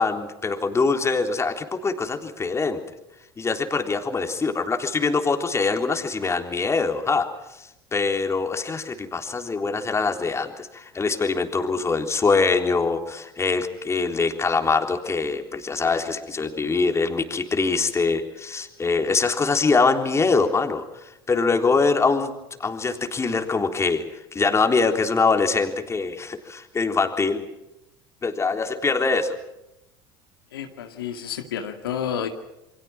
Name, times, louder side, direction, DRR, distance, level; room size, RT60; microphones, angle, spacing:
voice 1, 0.0-2.8 3.4-7.3 7.6-22.3 22.6-24.0 24.3-27.4 28.2-29.4, left 4 dB, 25° left, 5 dB, 3.7 m, -23 dB
voice 2, 30.5-32.3, left 8 dB, 85° left, 5 dB, 2.2 m, -30 dB
28.5 x 23.0 x 6.1 m, 0.90 s
hypercardioid pair, 75°, 12 cm